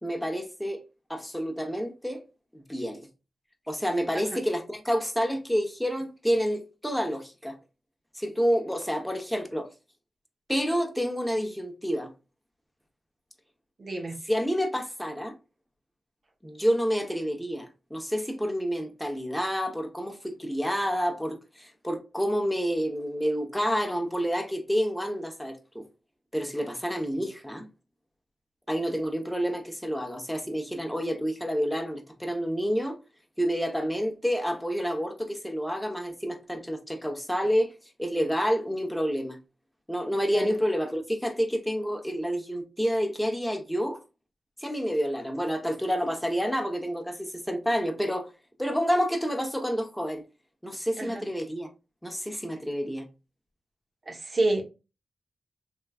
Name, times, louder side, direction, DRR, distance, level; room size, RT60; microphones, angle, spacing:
voice 1, 0.0-0.8 1.1-2.2 2.5-3.1 3.7-7.6 8.1-9.7 10.5-12.1 14.3-15.3 16.4-25.9 26.3-27.7 28.7-33.0 33.4-37.7 38.0-39.4 39.9-44.0 44.6-48.3 48.6-50.2 50.6-51.7 52.0-53.1, equal, 5° left, 0.9 m, -29 dB
voice 2, 13.8-14.2 40.3-40.5 51.0-51.2 54.1-54.6, right 2 dB, 50° right, 1.0 m, -29 dB
3.5 x 3.0 x 2.3 m
cardioid pair, 65°, 0 cm